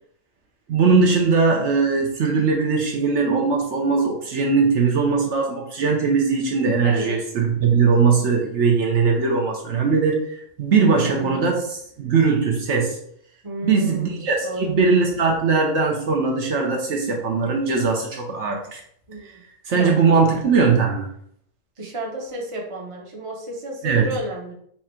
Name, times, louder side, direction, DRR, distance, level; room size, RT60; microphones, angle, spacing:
voice 1, 0.7-13.0 13.6-18.8 19.7-21.1 23.8-24.1, right 4 dB, 65° right, 0 dB, 1.0 m, -20 dB
voice 2, 6.8-7.2 10.9-11.5 13.4-14.8 19.1-19.4 19.8-19.9 21.8-24.5, right 1 dB, 30° right, -1 dB, 0.8 m, -32 dB
4.3 x 2.5 x 4.3 m, 0.66 s
omnidirectional pair, 1.3 m